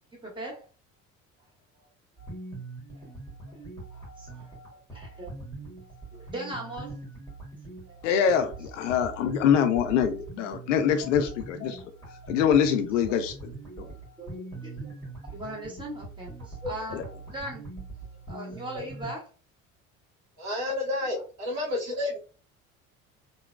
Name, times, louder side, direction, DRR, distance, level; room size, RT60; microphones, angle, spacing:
voice 1, 0.1-0.7 1.7-1.9 2.9-3.1 3.5-3.6 3.9-4.5 4.9-5.4 6.1-7.0 7.9-8.0 11.0-11.2 13.1-13.2 13.8-13.9 14.2-14.9 15.2-17.0 17.3-17.7 18.3-19.3, right 1 dB, 10° right, 1.5 m, -39 dB
sound 1, 2.2-19.1, right 3 dB, 10° left, 1.5 m, -42 dB
voice 2, 8.0-11.8 12.3-13.3 13.8-13.9 16.9-17.0, left 8 dB, 70° left, 0.5 m, -24 dB
voice 3, 20.4-22.2, left 2 dB, 40° right, 1.3 m, -30 dB
3.7 x 2.1 x 2.3 m
figure-of-eight pair, 55°, 39 cm